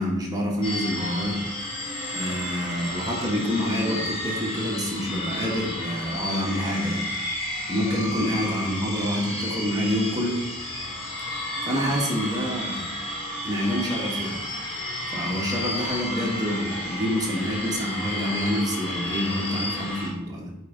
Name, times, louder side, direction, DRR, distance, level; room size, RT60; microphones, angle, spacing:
voice 1, 0.0-1.4 2.1-7.1 7.7-10.4 11.6-12.9 13.4-14.4 15.1-20.6, equal, 15° right, -2 dB, 1.7 m, -27 dB
sound 1, 0.6-20.1, left 1 dB, 25° left, 1.8 m, -32 dB
8.1 x 4.7 x 4.0 m, 0.93 s
head